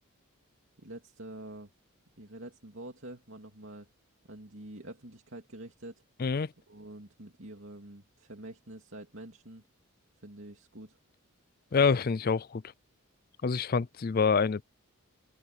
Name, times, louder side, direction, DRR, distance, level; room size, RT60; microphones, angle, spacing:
voice 1, 0.8-1.7 2.2-3.9 4.3-6.0 6.7-9.6 10.2-11.0, right 1 dB, 60° right, 2.9 m, -46 dB
voice 2, 6.2-6.5 11.7-12.6 13.4-14.6, left 5 dB, 40° left, 0.4 m, -26 dB
open air
head